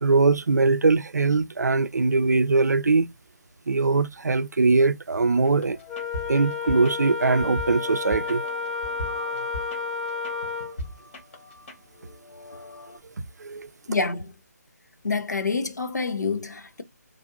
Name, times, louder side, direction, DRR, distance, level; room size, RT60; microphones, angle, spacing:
voice 1, 0.0-3.1 3.7-5.8 6.3-8.4 13.4-13.7, right 3 dB, 75° right, 0.4 m, -21 dB
sound 1, 5.4-13.0, left 1 dB, 45° left, 1.2 m, -40 dB
Wind instrument woodwind instrument, 5.9-10.8, left 4 dB, 5° left, 0.7 m, -31 dB
voice 2, 13.9-14.3 15.0-16.8, left 4 dB, 85° left, 0.6 m, -27 dB
3.3 x 2.5 x 2.6 m
figure-of-eight pair, 150°, 9 cm